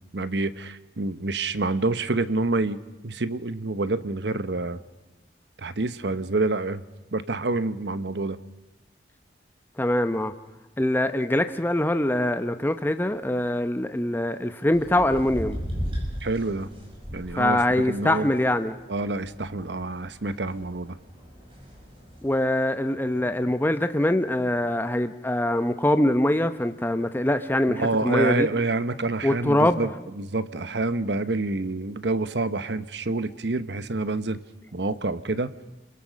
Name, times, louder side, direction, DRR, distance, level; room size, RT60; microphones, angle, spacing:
voice 1, 0.0-2.8 3.0-4.8 5.6-6.8 7.1-8.4 16.2-16.7 17.1-17.6 17.9-18.3 18.9-21.0 27.7-29.9 30.2-34.4 34.7-35.5, right 3 dB, 75° right, 13 dB, 1.0 m, -27 dB
voice 2, 9.8-10.3 10.8-15.6 17.4-18.8 22.2-28.5 29.2-29.9, left 1 dB, 10° left, 9 dB, 0.8 m, -23 dB
sound 1, 14.7-22.3, equal, 30° right, 6.6 m, -37 dB
29.0 x 22.5 x 6.4 m, 1.0 s
head